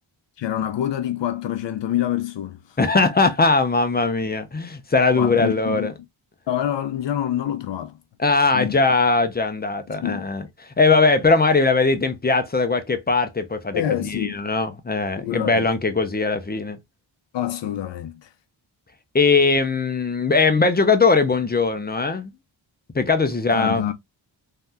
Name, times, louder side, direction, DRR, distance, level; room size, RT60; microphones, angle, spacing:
voice 1, 0.4-2.8 5.2-5.9 6.5-8.0 8.5-8.8 9.9-10.2 13.7-14.4 15.2-15.7 17.3-18.3 23.5-23.9, left 11 dB, 70° left, 0.5 m, -26 dB
voice 2, 2.8-5.9 8.2-16.8 19.1-22.3 22.9-23.9, left 3 dB, 20° left, 0.5 m, -20 dB
3.4 x 2.7 x 2.2 m
wide cardioid pair, 100°, 46 cm